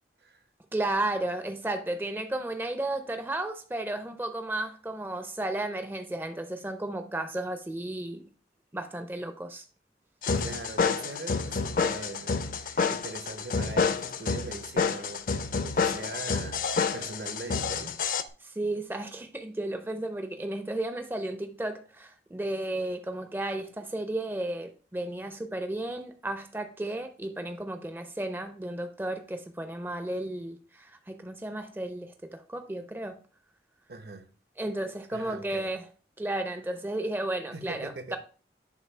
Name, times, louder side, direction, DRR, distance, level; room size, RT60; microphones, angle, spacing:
voice 1, 0.7-8.3 8.7-9.6 18.4-33.2 34.6-35.8 36.2-38.2, right 1 dB, 10° right, 0.4 m, -33 dB
sound 1, 10.2-18.2, left 5 dB, 50° left, 0.4 m, -29 dB
voice 2, 10.4-18.0 33.9-34.3 35.1-35.8 37.5-38.2, right 3 dB, 60° right, 0.7 m, -41 dB
6.6 x 2.6 x 5.4 m
head